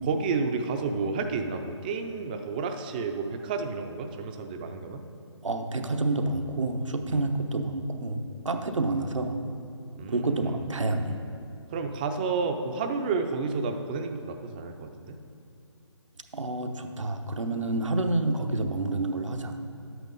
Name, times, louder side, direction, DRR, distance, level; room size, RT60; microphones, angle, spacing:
voice 1, 0.0-5.0 7.1-7.2 10.0-10.7 11.7-15.2, right 4 dB, 20° right, 5 dB, 0.5 m, -31 dB
voice 2, 5.4-8.2 8.4-9.4 10.1-11.2 16.3-19.5, right 2 dB, 80° right, 6 dB, 1.0 m, -28 dB
10.5 x 8.2 x 4.0 m, 2.6 s
figure-of-eight pair, 150°, 16 cm